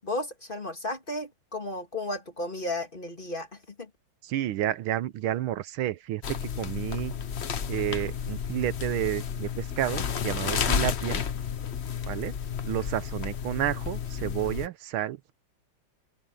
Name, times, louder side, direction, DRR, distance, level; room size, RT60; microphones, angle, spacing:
voice 1, 0.0-3.9, left 1 dB, 25° left, 2.0 m, -34 dB
voice 2, 4.2-7.1 7.7-11.2 12.1-12.3 12.6-15.3, right 13 dB, 80° right, 1.6 m, -30 dB
sound 1, 6.2-14.7, left 7 dB, 50° left, 0.8 m, -31 dB
open air
omnidirectional pair, 2.3 m